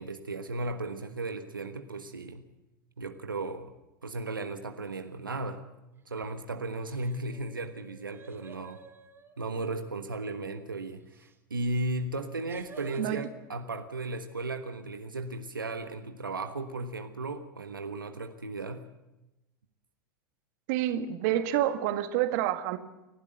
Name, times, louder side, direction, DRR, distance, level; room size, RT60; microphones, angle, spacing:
voice 1, 0.0-2.4 3.0-3.7 4.0-5.6 6.1-8.8 9.4-18.9, right 2 dB, 85° right, 7 dB, 1.4 m, -35 dB
sound 1, 6.0-6.4 6.8-9.3 11.1-11.3 12.5-13.1, right 4 dB, 20° right, 2.5 m, -52 dB
voice 2, 20.7-22.8, right 12 dB, 55° right, 9 dB, 1.7 m, -28 dB
29.5 x 12.0 x 7.9 m, 0.99 s
figure-of-eight pair, 85°, 11 cm